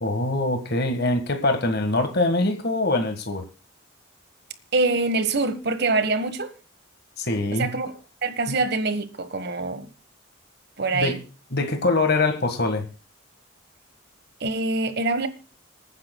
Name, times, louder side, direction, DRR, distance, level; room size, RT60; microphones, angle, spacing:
voice 1, 0.0-3.4 7.2-7.7 8.5-8.6 10.9-11.2 11.5-12.9, left 2 dB, 50° left, 1.6 m, -23 dB
voice 2, 4.7-6.5 7.5-9.9 10.8-11.2 14.4-15.3, right 3 dB, 50° right, 1.4 m, -25 dB
26.5 x 9.7 x 2.3 m
head